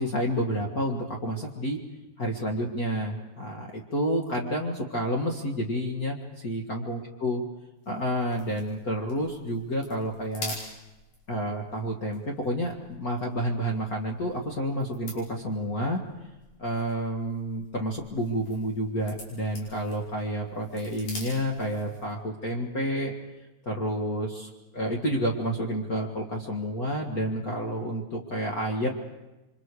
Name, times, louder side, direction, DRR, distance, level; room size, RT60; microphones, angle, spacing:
voice 1, 0.0-1.8 2.2-7.4 7.8-10.5 11.3-16.0 16.6-23.1 23.6-28.9, equal, 65° left, 0 dB, 0.9 m, -30 dB
sound 1, 7.8-22.2, left 1 dB, 40° left, 6.4 m, -47 dB
28.0 x 25.0 x 4.9 m, 1.0 s
omnidirectional pair, 4.6 m